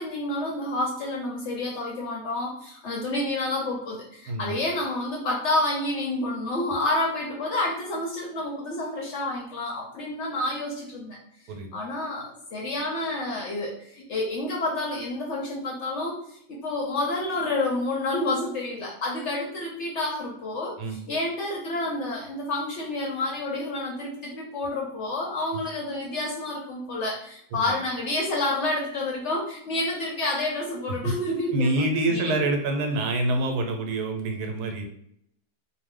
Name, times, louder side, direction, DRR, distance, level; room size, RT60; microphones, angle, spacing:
voice 1, 0.0-11.2 11.7-16.1 16.5-31.7 32.1-32.5, left 2 dB, 65° left, -2 dB, 0.7 m, -29 dB
voice 2, 31.5-34.8, right 2 dB, 80° right, 3 dB, 1.1 m, -26 dB
2.6 x 2.1 x 3.6 m, 0.69 s
omnidirectional pair, 1.6 m